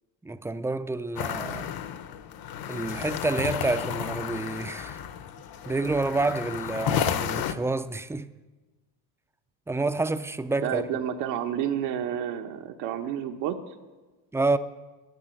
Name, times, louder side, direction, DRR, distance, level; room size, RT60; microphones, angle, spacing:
voice 1, 0.2-1.7 2.7-5.0 5.7-8.3 9.7-10.8 14.3-14.6, right 3 dB, 5° right, 0.4 m, -28 dB
sound 1, 1.2-7.5, left 9 dB, 50° left, 1.0 m, -32 dB
voice 2, 10.6-13.6, right 9 dB, 85° right, 1.1 m, -30 dB
11.0 x 9.1 x 9.0 m
cardioid pair, 110°, 45 cm